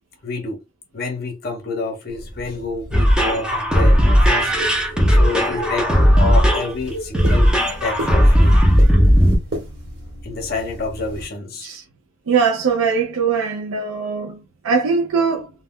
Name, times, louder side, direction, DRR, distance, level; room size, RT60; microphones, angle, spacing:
voice 1, 0.2-0.6 0.9-7.6 7.8-8.6 10.2-11.7, left 3 dB, 45° left, 0.5 m, -28 dB
sound 1, 2.1-11.3, equal, 55° right, 1.1 m, -35 dB
sound 2, 2.9-9.4, equal, 5° right, 0.5 m, -15 dB
voice 2, 12.3-15.5, right 5 dB, 80° right, 0.4 m, -21 dB
2.2 x 2.1 x 3.5 m
head